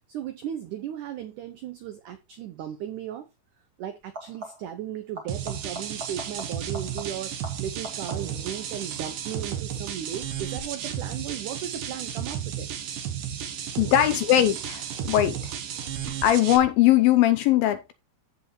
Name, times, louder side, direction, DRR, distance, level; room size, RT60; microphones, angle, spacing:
voice 1, 0.1-3.3 3.8-12.7, right 10 dB, 85° right, 1.7 m, -36 dB
sound 1, 2.6-2.8 4.0-4.8 5.1-8.5 14.0-14.5 16.1-16.2, right 1 dB, 30° right, 1.8 m, -42 dB
sound 2, 5.3-16.6, right 9 dB, 65° right, 2.3 m, -33 dB
voice 2, 13.8-15.5 16.2-17.9, left 13 dB, 80° left, 2.2 m, -20 dB
15.0 x 5.1 x 3.1 m
omnidirectional pair, 4.8 m